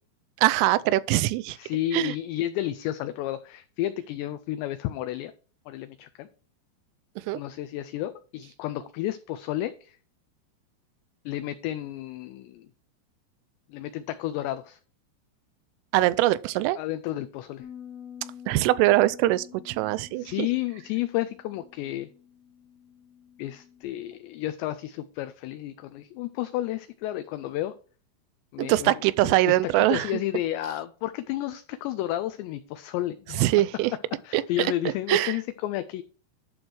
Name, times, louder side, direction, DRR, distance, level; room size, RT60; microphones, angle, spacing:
voice 1, 0.4-1.6 1.9-2.2 7.2-7.4 15.9-16.8 18.5-20.5 28.6-30.1 33.3-33.9 34.3-35.4, right 16 dB, 85° right, 3.1 m, -23 dB
voice 2, 1.6-5.3 5.7-6.3 7.3-10.0 11.3-12.7 13.7-14.8 16.8-17.7 20.2-22.1 23.4-27.8 28.5-28.9 29.3-33.5 34.2-36.0, left 14 dB, 90° left, 2.5 m, -31 dB
Bass guitar, 17.6-23.8, left 9 dB, 65° left, 2.5 m, -48 dB
11.5 x 6.1 x 3.3 m
omnidirectional pair, 5.6 m